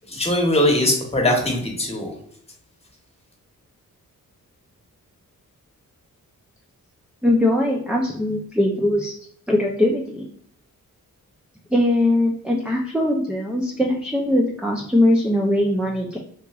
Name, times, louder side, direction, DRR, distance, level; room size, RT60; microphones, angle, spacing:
voice 1, 0.1-2.1, left 1 dB, 20° left, -1 dB, 1.0 m, -20 dB
voice 2, 7.2-9.1 9.5-10.3 11.7-16.2, left 1 dB, 5° right, -1 dB, 0.4 m, -21 dB
3.6 x 2.9 x 2.3 m, 0.65 s
cardioid pair, 85°, 34 cm